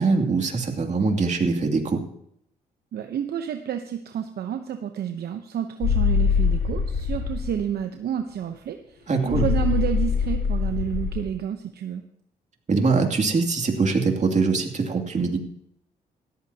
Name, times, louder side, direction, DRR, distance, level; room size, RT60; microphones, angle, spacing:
voice 1, 0.0-2.0 9.1-9.5 12.7-15.4, right 4 dB, 45° right, 3 dB, 2.7 m, -22 dB
voice 2, 2.9-12.0, right 9 dB, 65° right, 6 dB, 0.9 m, -30 dB
sound 1, 5.8-7.6 9.3-11.3, left 6 dB, 80° left, 3.2 m, -23 dB
17.5 x 14.0 x 2.9 m, 0.71 s
supercardioid pair, 60°, 18 cm